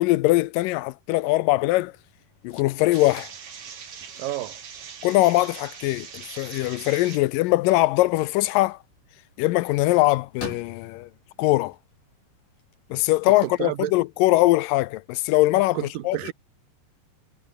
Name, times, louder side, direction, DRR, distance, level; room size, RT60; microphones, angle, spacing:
voice 1, 0.0-1.9 2.4-3.3 5.0-8.8 9.4-11.1 11.4-11.8 12.9-16.2, left 18 dB, 80° left, 2.2 m, -21 dB
sound 1, 1.5-13.9, left 4 dB, 65° left, 8.1 m, -48 dB
sound 2, 2.9-7.2, right 7 dB, 50° right, 3.8 m, -41 dB
voice 2, 4.2-4.6 13.6-13.9 15.7-16.3, right 14 dB, 75° right, 2.7 m, -30 dB
omnidirectional pair, 4.1 m